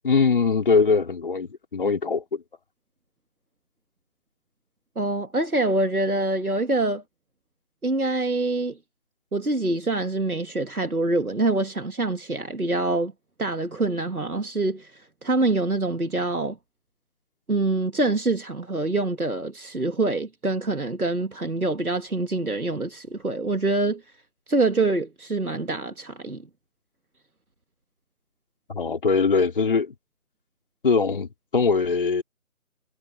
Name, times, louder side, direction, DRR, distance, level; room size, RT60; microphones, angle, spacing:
voice 1, 0.0-2.4 28.7-29.9 30.8-32.2, left 4 dB, 35° left, 5.1 m, -22 dB
voice 2, 5.0-7.0 7.8-8.8 9.3-13.1 13.4-16.6 17.5-24.0 24.5-26.4, right 2 dB, 85° right, 2.2 m, -25 dB
figure-of-eight pair, 160°, 43 cm